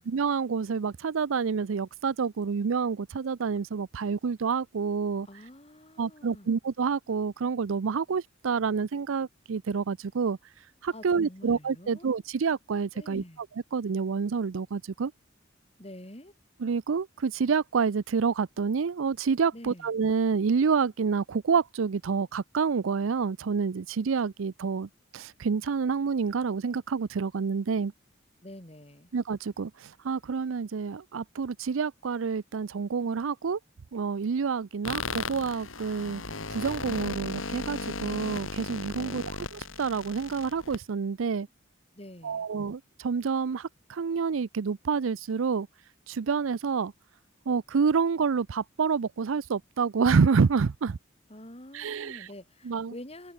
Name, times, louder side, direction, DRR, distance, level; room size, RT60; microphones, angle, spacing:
voice 1, 0.0-5.3 6.0-10.4 10.8-13.2 13.7-15.1 16.6-24.9 25.1-27.9 29.1-29.7 30.0-33.6 33.9-36.2 36.5-39.2 39.8-41.5 42.2-45.7 46.1-46.9 47.5-51.0 51.7-52.2 52.7-52.9, right 5 dB, 80° right, 0.5 m, -28 dB
voice 2, 5.2-6.6 10.9-12.1 12.9-13.4 15.8-16.3 19.5-19.9 28.4-29.1 38.9-39.3 41.9-42.5 51.3-53.3, left 1 dB, 30° left, 5.1 m, -47 dB
sound 1, 34.8-40.8, left 3 dB, 85° left, 3.4 m, -36 dB
open air
head